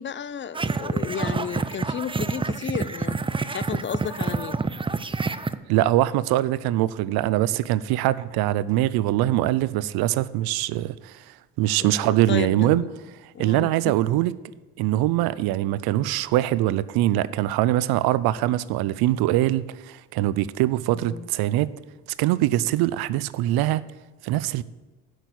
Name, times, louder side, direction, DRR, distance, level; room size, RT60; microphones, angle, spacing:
voice 1, 0.0-3.2 3.5-4.6 11.8-12.9 13.3-13.9 20.9-21.3, left 8 dB, 30° left, 0.6 m, -33 dB
sound 1, 0.6-5.6, right 4 dB, 15° right, 0.4 m, -27 dB
voice 2, 5.7-11.2 11.6-12.8 13.4-14.3 14.8-21.7 22.2-23.8 24.2-24.6, right 14 dB, 90° right, 0.5 m, -23 dB
8.1 x 6.3 x 8.0 m
supercardioid pair, 70°, 37 cm